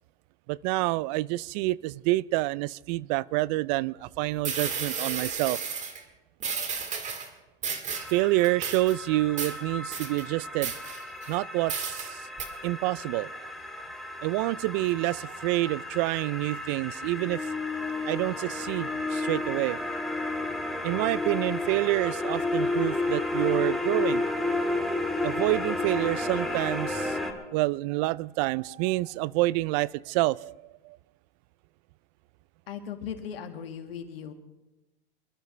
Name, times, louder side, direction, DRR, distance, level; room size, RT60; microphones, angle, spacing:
voice 1, 0.5-5.6 8.1-10.7 11.3-12.3 12.6-13.3 14.2-17.5 18.0-19.8 20.8-24.2 25.2-27.2 27.5-30.6 30.8-31.0, right 19 dB, 45° right, 23 dB, 0.4 m, -28 dB
sound 1, 4.1-4.2 4.4-6.0 6.4-7.3 7.6-8.2 8.4-9.0 9.4-9.5 9.9-10.2 10.6-11.3 11.7-12.1 12.4-12.5, right 6 dB, 25° right, 2.0 m, -33 dB
sound 2, 7.9-27.3, left 2 dB, ahead, 2.1 m, -32 dB
voice 2, 32.7-34.3, left 8 dB, 85° left, 5 dB, 2.1 m, -38 dB
26.0 x 13.0 x 3.3 m, 1.0 s
hypercardioid pair, 120°, 29 cm